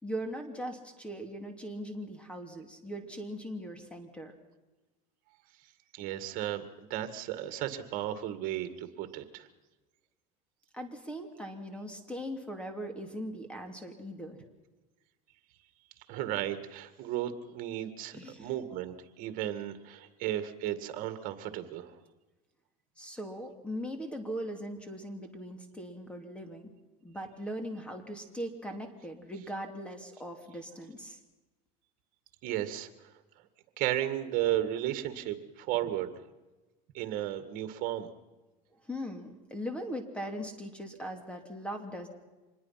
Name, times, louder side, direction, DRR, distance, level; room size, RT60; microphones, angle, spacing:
voice 1, 0.0-4.3 10.7-14.4 18.1-18.5 23.0-26.7 27.0-31.2 38.9-42.1, equal, 5° left, 5 dB, 2.8 m, -40 dB
voice 2, 5.9-9.5 16.1-22.0 32.4-32.9 33.8-36.1 36.9-38.1, right 12 dB, 55° right, 10 dB, 2.1 m, -34 dB
25.5 x 20.5 x 5.9 m, 1.2 s
supercardioid pair, 130°, 17 cm